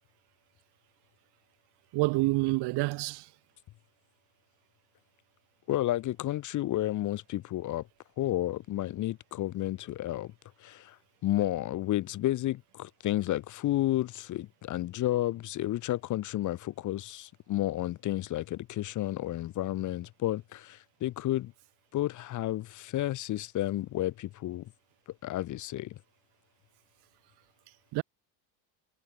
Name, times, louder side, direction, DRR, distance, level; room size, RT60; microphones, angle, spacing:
voice 1, 1.9-3.3 27.9-28.0, right 22 dB, 65° right, 2.0 m, -27 dB
voice 2, 5.7-7.9 8.2-10.3 10.6-11.0 11.2-21.5 21.9-24.7 25.2-26.0, left 14 dB, 45° left, 0.9 m, -31 dB
supercardioid pair, 115°, 42 cm